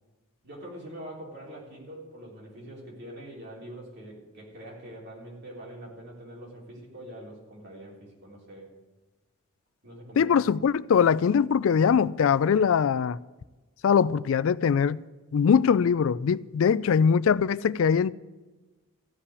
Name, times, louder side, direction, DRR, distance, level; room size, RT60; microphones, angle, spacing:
voice 1, 0.4-8.7 9.8-10.3, right 1 dB, 50° right, 3.5 m, -44 dB
voice 2, 10.2-13.2 13.8-15.0 15.3-18.1, left 7 dB, 70° left, 0.3 m, -22 dB
15.0 x 5.7 x 9.6 m
head